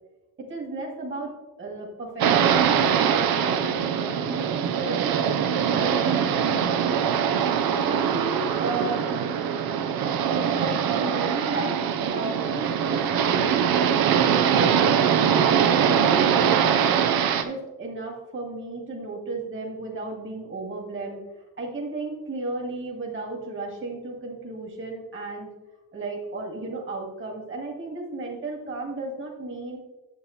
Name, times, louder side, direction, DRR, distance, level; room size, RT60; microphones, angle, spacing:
voice 1, 0.4-1.3 1.6-5.2 5.7-7.0 7.8-9.3 10.2-11.8 12.1-14.0 14.5-17.0 17.4-21.2 21.6-25.5 25.9-29.8, right 3 dB, 30° right, 0 dB, 2.1 m, -34 dB
sound 1, 2.2-17.4, right 8 dB, 65° right, 0.7 m, -22 dB
8.1 x 7.2 x 3.2 m, 1.0 s
supercardioid pair, 75°, 39 cm